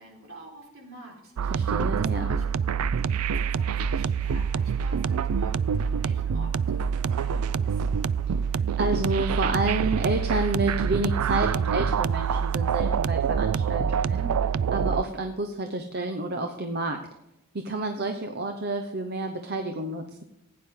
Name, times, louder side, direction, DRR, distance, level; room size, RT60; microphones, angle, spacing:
voice 1, 0.0-8.1, right 1 dB, 65° right, -2 dB, 4.1 m, -48 dB
sound 1, 1.4-15.0, right 6 dB, 90° right, 0.4 m, -26 dB
voice 2, 1.5-2.3 8.8-14.3 14.7-17.0 17.6-20.2, right 2 dB, 45° right, 5 dB, 0.8 m, -29 dB
15.5 x 9.5 x 3.7 m, 0.89 s
head